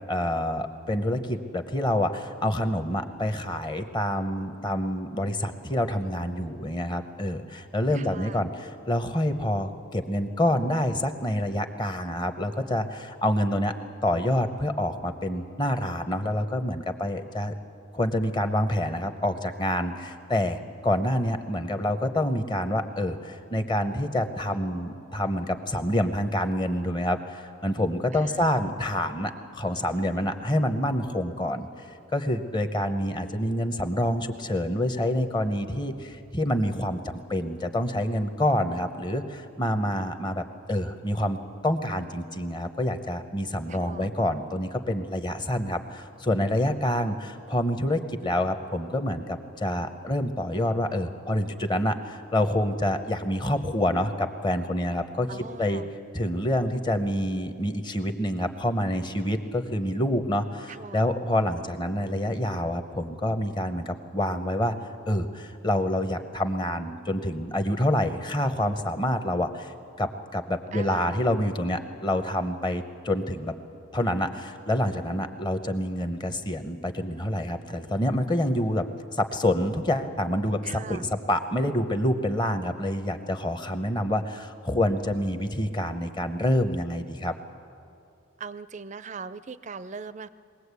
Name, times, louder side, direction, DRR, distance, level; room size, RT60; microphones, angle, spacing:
voice 1, 0.1-13.7 14.0-17.5 17.9-31.9 32.1-41.4 41.6-55.3 55.6-55.8 56.1-64.7 65.1-73.5 73.9-78.9 79.1-87.3, left 1 dB, 20° left, 8 dB, 0.8 m, -27 dB
voice 2, 7.9-8.5 28.1-28.6 43.7-44.1 55.3-55.9 60.7-61.1 70.7-71.2 80.6-81.1 88.4-90.3, right 5 dB, 35° right, 15 dB, 0.4 m, -40 dB
21.5 x 18.0 x 8.3 m, 2.6 s
head